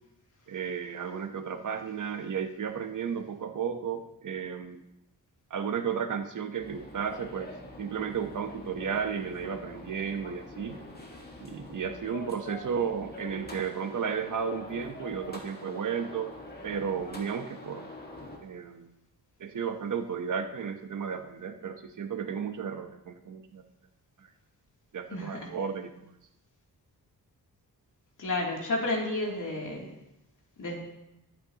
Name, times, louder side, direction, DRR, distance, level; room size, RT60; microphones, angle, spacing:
voice 1, 0.5-4.8 5.5-10.8 11.4-16.3 16.6-17.9 18.4-18.9 19.4-23.6 24.2-24.3 24.9-26.1, right 7 dB, 55° right, 7 dB, 1.0 m, -33 dB
sound 1, 6.6-18.4, left 2 dB, 25° left, 1.7 m, -45 dB
voice 2, 28.2-29.9 30.6-30.8, left 2 dB, 55° left, -2 dB, 2.9 m, -31 dB
21.5 x 8.8 x 2.9 m, 0.87 s
wide cardioid pair, 160°, 36 cm